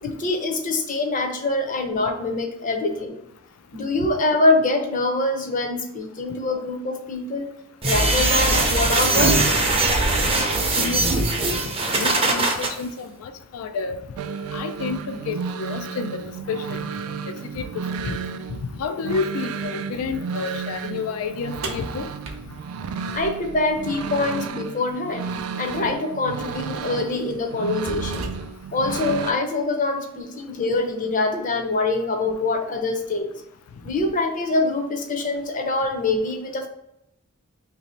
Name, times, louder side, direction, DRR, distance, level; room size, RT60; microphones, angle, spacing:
voice 1, 0.0-3.2 3.7-7.5 7.8-9.4 23.1-25.3 25.6-28.3 28.7-33.3 33.8-36.7, left 2 dB, 40° left, 4 dB, 0.6 m, -24 dB
sound 1, 7.8-12.7, right 2 dB, 25° right, 0.6 m, -21 dB
voice 2, 10.8-11.3 12.0-14.0 14.5-16.2 16.5-16.8 17.2-18.2 18.8-22.1, left 5 dB, 90° left, 9 dB, 0.4 m, -30 dB
sound 2, 14.1-29.3, right 6 dB, 90° right, 0.3 m, -33 dB
sound 3, 21.6-23.8 25.7-25.8 26.6-26.8 27.3-28.8, right 2 dB, 70° right, 0.7 m, -35 dB
2.9 x 2.7 x 4.2 m, 0.81 s
head